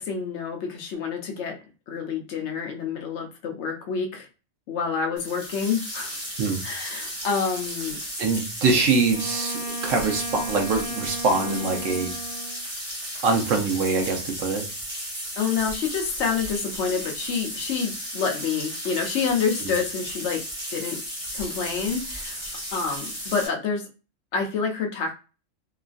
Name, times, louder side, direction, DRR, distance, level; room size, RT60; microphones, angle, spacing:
voice 1, 0.0-1.6 1.9-4.3 4.7-6.2 6.6-8.0 15.4-20.4 20.7-21.0 21.3-22.4 22.7-23.9 24.3-25.1, left 6 dB, 65° left, 3 dB, 0.8 m, -28 dB
sound 1, 5.2-23.5, equal, 25° right, 0.9 m, -34 dB
voice 2, 8.2-12.1 13.2-14.7 19.6-19.7, right 4 dB, 75° right, 2 dB, 1.1 m, -24 dB
Wind instrument woodwind instrument, 9.1-12.6, right 2 dB, 25° left, 0.7 m, -35 dB
3.0 x 2.3 x 2.4 m, 0.33 s
omnidirectional pair, 1.4 m